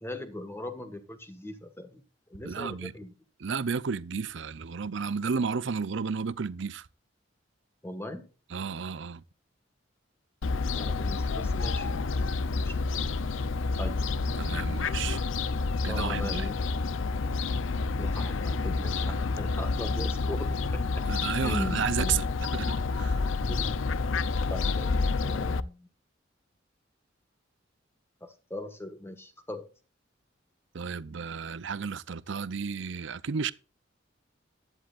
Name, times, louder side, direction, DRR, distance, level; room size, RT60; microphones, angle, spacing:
voice 1, 0.0-2.0 2.3-3.1 7.8-8.3 10.7-12.3 12.6-12.8 13.8-14.0 15.9-16.6 18.0-21.0 21.4-22.2 23.4-23.8 24.5-24.9 25.2-25.9 28.2-29.7, left 1 dB, 15° left, 1.5 m, -39 dB
voice 2, 2.4-2.9 3.4-6.9 8.5-9.2 14.4-15.2 15.8-16.5 21.1-22.3 22.5-23.2 30.7-33.5, right 6 dB, 70° right, 0.6 m, -32 dB
Fowl, 10.4-25.6, left 3 dB, 90° left, 0.6 m, -29 dB
15.5 x 11.0 x 2.5 m
head